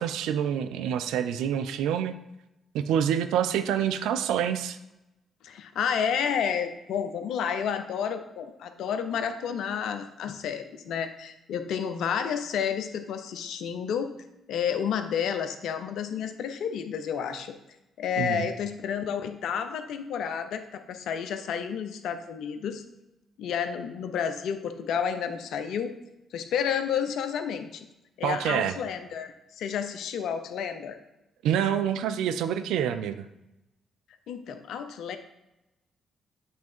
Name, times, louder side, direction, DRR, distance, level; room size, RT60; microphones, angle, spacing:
voice 1, 0.0-2.1 2.7-4.8 18.2-18.5 28.2-28.7 31.4-33.3, right 9 dB, 75° right, 10 dB, 0.4 m, -27 dB
voice 2, 5.4-14.1 14.5-17.5 18.0-22.8 23.4-25.9 26.3-27.7 28.2-31.0 34.3-35.2, left 7 dB, 70° left, 9 dB, 0.6 m, -30 dB
8.4 x 3.5 x 4.4 m, 0.93 s
hypercardioid pair, 45°, 0 cm